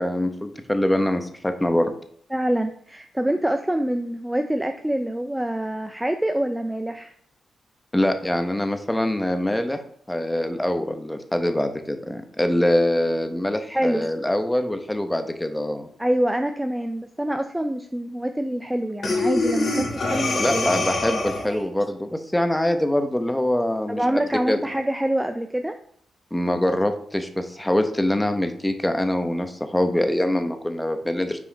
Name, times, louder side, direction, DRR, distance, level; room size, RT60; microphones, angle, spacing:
voice 1, 0.0-1.9 7.9-9.8 10.1-15.9 20.4-24.2 24.5-24.6 26.3-31.4, left 1 dB, 10° left, 7 dB, 0.8 m, -24 dB
voice 2, 2.3-7.1 13.7-14.1 16.0-20.7 21.5-21.7 23.9-25.8, right 1 dB, 10° right, 7 dB, 0.4 m, -25 dB
Breathing, 19.0-21.6, left 2 dB, 55° left, 1.6 m, -24 dB
6.0 x 4.8 x 4.0 m, 0.63 s
cardioid pair, 75°, 0 cm